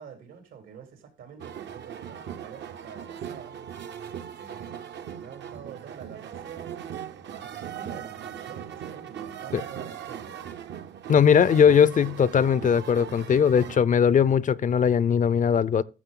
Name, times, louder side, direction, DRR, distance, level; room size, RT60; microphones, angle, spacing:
voice 1, 0.0-4.8 5.2-10.5, right 7 dB, 85° right, 3.4 m, -46 dB
sound 1, 1.4-13.8, right 9 dB, 60° right, 0.8 m, -39 dB
voice 2, 11.1-15.8, left 7 dB, 40° left, 0.5 m, -20 dB
13.5 x 6.6 x 3.8 m
cardioid pair, 90°, 20 cm